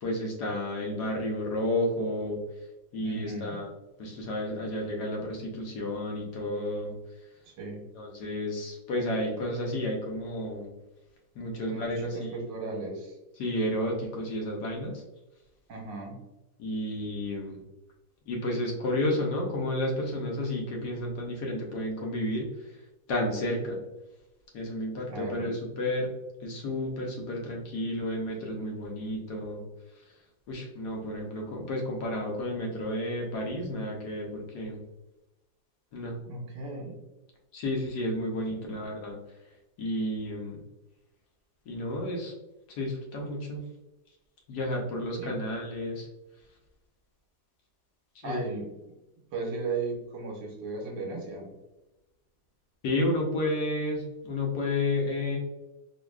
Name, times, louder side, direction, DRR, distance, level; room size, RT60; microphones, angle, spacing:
voice 1, 0.0-2.4 2.9-3.7 4.0-6.9 7.9-10.7 11.3-12.3 13.4-15.0 16.6-17.6 18.3-22.7 23.1-23.8 24.5-26.1 26.4-29.6 30.0-30.1 30.5-34.8 35.9-36.2 37.5-39.2 39.8-40.6 41.7-42.3 42.7-43.7 44.5-46.1 48.2-48.4 52.8-55.4, left 1 dB, 70° left, 0 dB, 1.3 m, -31 dB
voice 2, 3.0-3.6 7.4-7.8 11.7-13.2 15.7-16.2 25.1-25.5 36.3-37.0 38.5-38.7 45.2-45.3 48.2-48.7 49.3-51.5, right 3 dB, 80° right, 0 dB, 1.6 m, -36 dB
3.9 x 2.8 x 2.2 m, 1.0 s
omnidirectional pair, 1.9 m